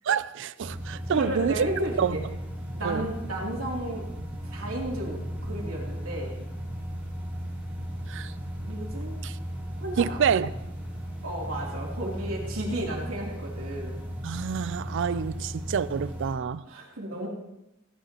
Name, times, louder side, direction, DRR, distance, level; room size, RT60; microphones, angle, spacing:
voice 1, 0.0-1.7 2.0-2.2 2.8-3.1 8.1-8.3 9.2-9.4 10.0-10.5 14.2-16.6, right 7 dB, 60° right, 0.4 m, -27 dB
sound 1, 0.6-16.3, equal, 5° right, 2.7 m, -36 dB
voice 2, 1.1-2.2 2.7-4.0 4.5-6.4 8.6-9.2 9.8-10.2 11.2-14.0 16.7-17.3, right 1 dB, 75° right, 3.0 m, -33 dB
16.5 x 9.9 x 2.9 m
head